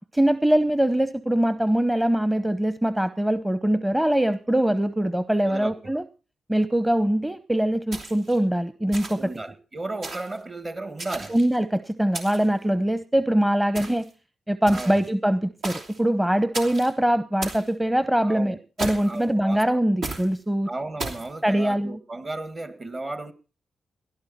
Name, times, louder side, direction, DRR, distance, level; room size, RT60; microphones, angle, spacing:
voice 1, 0.0-6.0 6.5-9.3 11.3-14.1 14.5-20.7 21.4-22.0, right 1 dB, 10° right, 0.9 m, -23 dB
voice 2, 5.4-6.0 9.1-11.4 14.7-15.0 18.2-18.6 19.0-19.8 20.7-23.3, right 2 dB, 40° right, 1.9 m, -34 dB
sound 1, 7.9-8.4 8.9-9.4 10.0-10.4 11.0-11.6 12.1-12.6 13.7-14.1 14.7-15.1 15.6-16.0 16.5-16.9 17.4-17.7 18.8-19.2 20.0-20.3 21.0-21.3, right 2 dB, 75° right, 3.0 m, -34 dB
18.0 x 12.0 x 4.2 m
hypercardioid pair, 40°, 0 cm